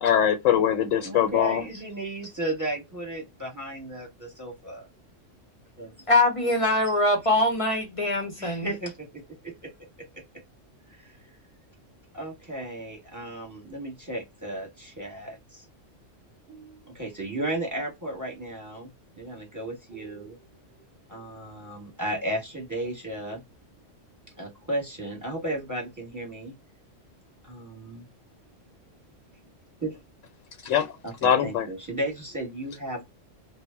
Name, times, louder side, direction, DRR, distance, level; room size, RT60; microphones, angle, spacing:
voice 1, 0.0-1.6 30.6-30.9 31.2-31.7, left 9 dB, 85° left, 0.9 m, -22 dB
voice 2, 1.0-4.1 4.4-4.8 5.8-5.9 8.4-8.9 12.2-14.7 15.0-15.3 17.0-18.9 19.2-20.3 21.1-23.4 24.4-26.5 27.5-28.0 29.8-29.9 31.0-33.0, right 1 dB, 15° right, 0.8 m, -34 dB
voice 3, 6.1-8.7, left 2 dB, 35° left, 0.5 m, -23 dB
2.0 x 2.0 x 3.3 m
omnidirectional pair, 1.3 m